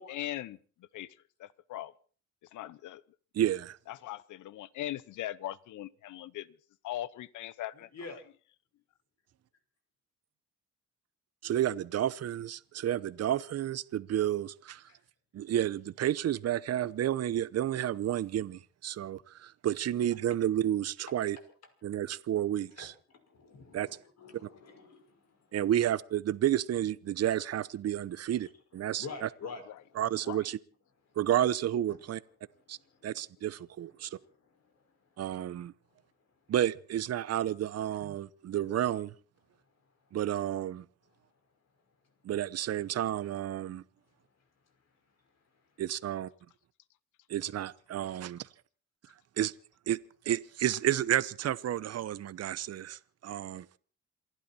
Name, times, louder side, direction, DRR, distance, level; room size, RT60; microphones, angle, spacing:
voice 1, 0.0-1.9 2.5-3.0 3.9-6.5 6.8-8.1 29.7-29.8 30.1-30.5, left 14 dB, 80° left, 0.9 m, -40 dB
voice 2, 3.4-3.8 11.4-14.8 15.3-21.4 21.8-22.9 23.7-23.9 25.5-28.5 28.7-29.3 30.0-30.6 31.2-32.2 32.7-32.8 33.0-34.1 35.2-35.7 36.5-39.1 40.1-40.8 42.2-43.8 45.8-46.3 47.3-48.4 49.4-49.5 49.9-50.0 50.3-53.8, right 11 dB, 55° right, 0.8 m, -31 dB
voice 3, 22.8-25.6 28.3-28.5 28.9-30.0 31.9-32.0 32.8-33.1 34.1-34.6, left 4 dB, 60° left, 5.5 m, -47 dB
27.5 x 12.0 x 4.3 m
cardioid pair, 90°, 30 cm